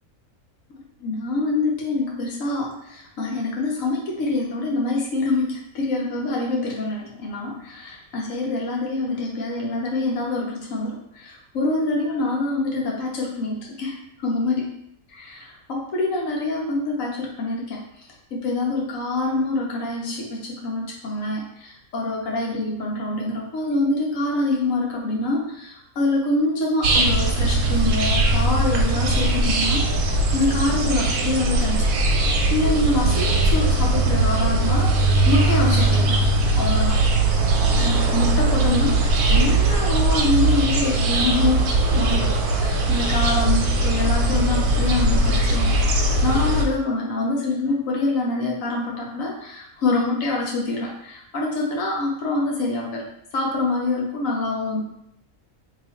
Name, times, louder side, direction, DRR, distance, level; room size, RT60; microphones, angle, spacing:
voice 1, 1.0-14.7 15.1-17.8 18.3-29.8 30.3-31.9 32.5-36.2 36.6-37.0 37.8-41.6 42.0-53.0 53.3-54.8, left 2 dB, 65° left, -1 dB, 1.1 m, -25 dB
sound 1, 26.8-46.6, right 2 dB, 90° right, 1.1 m, -20 dB
2.9 x 2.4 x 4.2 m, 0.76 s
omnidirectional pair, 1.6 m